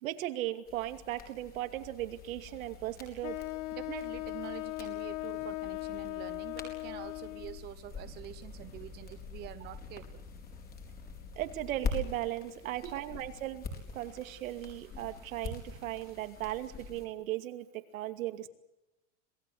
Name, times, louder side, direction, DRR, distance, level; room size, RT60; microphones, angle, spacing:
voice 1, 0.0-3.4 11.4-13.6 13.9-17.7 17.9-18.5, right 14 dB, 75° right, 9 dB, 2.6 m, -37 dB
sound 1, 0.6-17.0, left 4 dB, 25° left, 4.7 m, -45 dB
sound 2, 1.7-11.6, left 13 dB, 85° left, 4.9 m, -55 dB
Wind instrument woodwind instrument, 3.2-7.7, left 18 dB, 60° left, 1.6 m, -38 dB
voice 2, 3.7-10.2 12.6-13.0, right 13 dB, 25° right, 12 dB, 0.9 m, -46 dB
27.0 x 19.0 x 8.0 m, 0.98 s
supercardioid pair, 160°, 41 cm